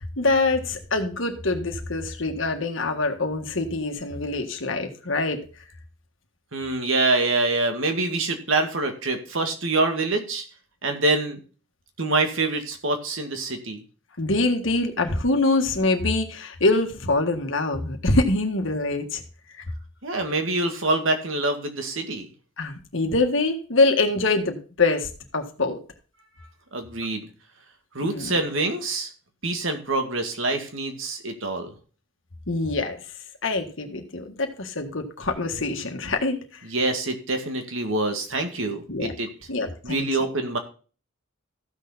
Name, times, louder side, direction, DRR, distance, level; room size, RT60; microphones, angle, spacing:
voice 1, 0.2-5.4 14.2-19.2 22.6-25.8 28.0-28.3 32.5-33.0 33.4-36.6 38.9-39.1 39.5-40.0, left 2 dB, 65° left, 4 dB, 1.7 m, -24 dB
voice 2, 6.5-10.4 10.8-11.4 12.0-13.8 20.0-22.3 26.7-27.3 27.9-29.1 29.4-31.7 36.6-39.3 39.8-40.6, right 2 dB, 70° right, 5 dB, 2.1 m, -25 dB
14.5 x 6.6 x 4.1 m, 0.38 s
head